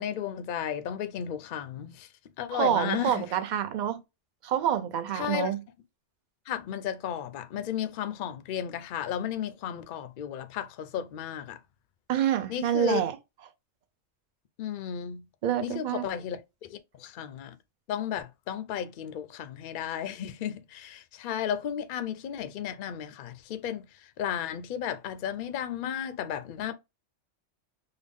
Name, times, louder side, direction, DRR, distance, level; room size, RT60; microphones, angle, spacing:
voice 1, 0.0-2.1 2.4-3.3 5.1-5.5 6.5-11.6 12.5-13.0 14.6-15.2 15.6-17.6 17.9-26.7, left 9 dB, 60° left, 0.6 m, -34 dB
voice 2, 2.5-4.0 4.4-5.6 12.1-13.1 15.4-16.1, right 10 dB, 55° right, 0.6 m, -27 dB
3.8 x 2.0 x 3.5 m
omnidirectional pair, 1.2 m